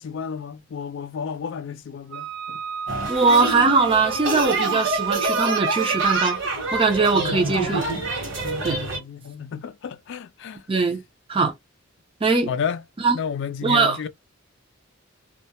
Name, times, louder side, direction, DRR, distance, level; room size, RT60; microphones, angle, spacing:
voice 1, 0.0-2.6 7.1-7.7 8.4-10.7 12.5-12.8 13.1-14.1, left 7 dB, 60° left, 0.3 m, -32 dB
Wind instrument woodwind instrument, 2.1-6.4, right 9 dB, 85° right, 0.4 m, -30 dB
sound 1, 2.9-9.0, right 2 dB, 60° right, 1.1 m, -27 dB
voice 2, 3.1-6.4 6.7-7.9 8.6-8.8 10.7-11.0 11.3-11.5 12.2-12.5 13.0-13.2 13.6-14.0, right 4 dB, 25° right, 0.5 m, -20 dB
2.2 x 2.0 x 2.8 m
head